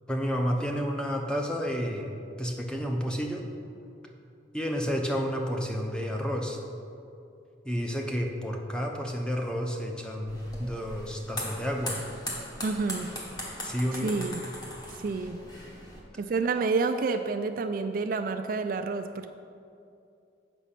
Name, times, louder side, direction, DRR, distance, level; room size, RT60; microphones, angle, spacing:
voice 1, 0.1-2.1 2.4-3.5 4.5-6.6 7.6-12.0 13.6-14.1, equal, 5° left, 1 dB, 0.7 m, -30 dB
sound 1, 10.3-16.0, left 1 dB, 20° left, 1.2 m, -39 dB
voice 2, 12.6-13.1 13.9-14.4 14.9-15.4 16.2-19.3, right 4 dB, 50° right, 7 dB, 0.3 m, -29 dB
8.1 x 6.1 x 5.8 m, 2.5 s
head